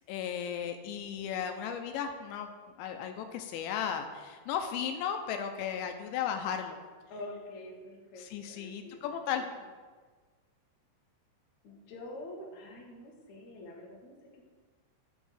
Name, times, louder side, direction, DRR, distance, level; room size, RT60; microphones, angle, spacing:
voice 1, 0.1-2.5 2.8-6.8 8.2-9.4, left 8 dB, 85° left, 6 dB, 2.9 m, -35 dB
voice 2, 7.1-9.6 11.6-14.4, left 1 dB, 60° left, -2 dB, 2.0 m, -46 dB
12.0 x 6.2 x 3.3 m, 1.4 s
omnidirectional pair, 5.3 m